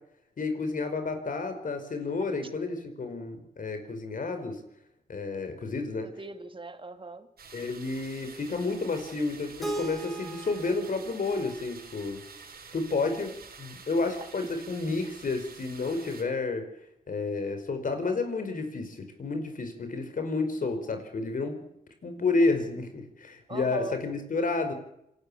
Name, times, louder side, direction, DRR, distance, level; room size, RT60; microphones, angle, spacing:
voice 1, 0.4-4.6 5.1-6.1 7.5-12.2 12.7-13.3 13.6-16.7 17.1-21.6 22.0-24.7, left 3 dB, 60° left, 7 dB, 4.9 m, -30 dB
voice 2, 6.0-7.3 14.4-14.5 15.0-15.1 23.5-24.0, right 2 dB, 35° right, 8 dB, 2.5 m, -40 dB
sound 1, 7.4-16.2, right 5 dB, 75° right, 5.4 m, -49 dB
Keyboard (musical), 9.6-12.5, right 2 dB, ahead, 5.2 m, -39 dB
26.5 x 12.0 x 8.7 m, 0.80 s
cardioid pair, 75°, 16 cm